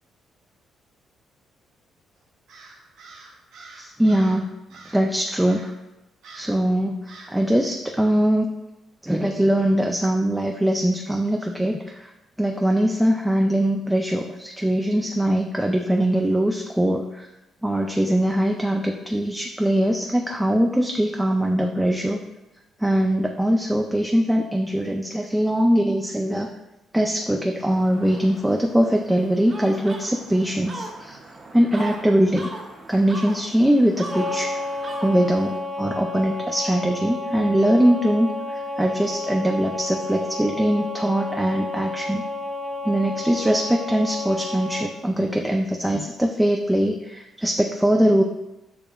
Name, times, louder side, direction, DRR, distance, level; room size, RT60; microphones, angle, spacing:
Crow, 2.5-4.4 4.7-5.1 5.4-5.8 6.2-6.6 7.1-7.4, right 3 dB, 80° right, 0.7 m, -45 dB
voice 1, 3.8-4.5 4.9-5.7 6.3-8.5 9.0-12.1 12.4-17.3 17.6-22.2 22.8-26.5 26.9-31.2 31.5-32.5 32.9-34.6 35.0-42.2 42.8-48.2, equal, 5° right, 1 dB, 0.3 m, -22 dB
sound 1, 27.7-35.6, right 2 dB, 40° right, 0.6 m, -39 dB
sound 2, 34.1-44.9, left 2 dB, 10° left, 0.7 m, -31 dB
6.8 x 2.9 x 2.3 m, 0.99 s
cardioid pair, 90°, 0 cm